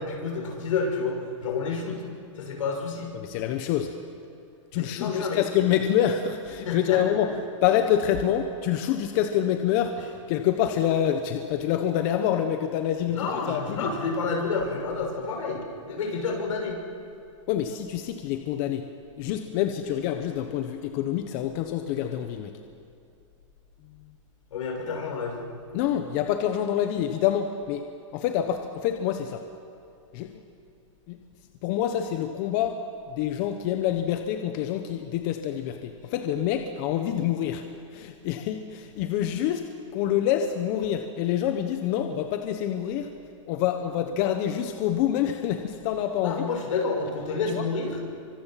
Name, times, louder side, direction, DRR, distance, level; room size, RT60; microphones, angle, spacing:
voice 1, 0.0-2.0 2.4-3.2 4.7-5.4 6.6-7.0 13.1-16.8 24.5-25.4 46.2-48.0, left 4 dB, 80° left, 1 dB, 6.5 m, -29 dB
voice 2, 3.1-3.9 4.7-7.3 7.6-10.0 10.3-13.9 17.5-18.9 19.2-22.5 25.7-27.8 28.1-29.4 30.1-30.4 31.1-31.2 31.6-37.7 37.9-43.1 43.5-46.5 47.5-47.6, left 10 dB, 35° left, 6 dB, 1.2 m, -26 dB
28.5 x 25.0 x 5.9 m, 2.6 s
supercardioid pair, 165°, 17 cm